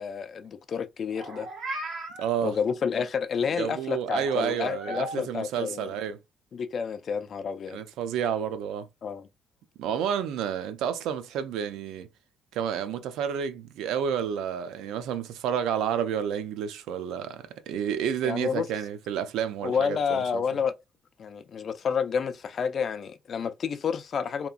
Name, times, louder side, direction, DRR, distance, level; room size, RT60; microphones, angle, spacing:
voice 1, 0.0-1.5 2.4-5.9 6.5-7.8 9.0-9.3 18.2-18.7 19.6-20.7 21.2-24.5, left 6 dB, 45° left, 0.4 m, -29 dB
Meow, 1.1-2.3 4.1-5.2, right 2 dB, 55° right, 0.9 m, -37 dB
voice 2, 2.2-2.6 3.6-6.2 7.7-8.9 9.8-12.1 12.5-20.4, right 8 dB, 90° right, 0.4 m, -30 dB
2.9 x 2.3 x 2.4 m
cardioid pair, 130°, 0 cm